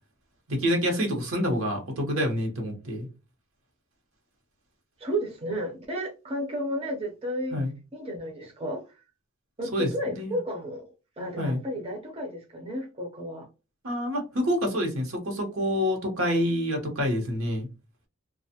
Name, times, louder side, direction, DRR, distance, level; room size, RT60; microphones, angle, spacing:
voice 1, 0.5-3.1 7.5-7.7 9.7-10.4 11.4-11.6 13.8-17.7, equal, 75° right, 1.0 m, -27 dB
voice 2, 5.0-7.6 7.9-8.8 9.6-10.8 11.2-13.5, equal, 25° right, 0.6 m, -32 dB
2.5 x 2.3 x 2.8 m
head